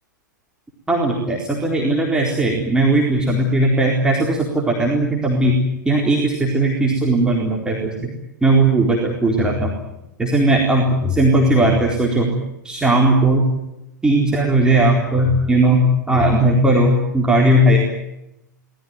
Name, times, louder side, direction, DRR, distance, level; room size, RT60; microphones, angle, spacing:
voice 1, 0.9-5.6 5.9-8.1 8.4-9.7 10.2-12.3 12.6-13.4 14.0-17.8, right 1 dB, 10° right, -1 dB, 4.2 m, -17 dB
26.0 x 19.5 x 9.3 m, 0.91 s
figure-of-eight pair, 100°, 10 cm